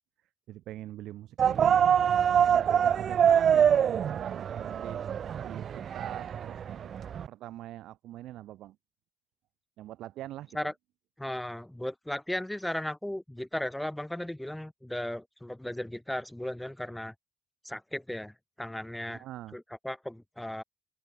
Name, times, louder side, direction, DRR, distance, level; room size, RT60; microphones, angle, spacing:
voice 1, 0.5-1.9 2.5-5.1 5.4-6.9 7.3-8.8 9.8-10.7 19.1-19.6, right 14 dB, 85° right, 2.6 m, -43 dB
sound 1, 1.4-7.3, right 8 dB, 60° right, 0.3 m, -25 dB
voice 2, 11.2-17.1 17.6-19.2 19.5-20.6, left 1 dB, 5° left, 0.4 m, -36 dB
open air
cardioid pair, 90°, 0 cm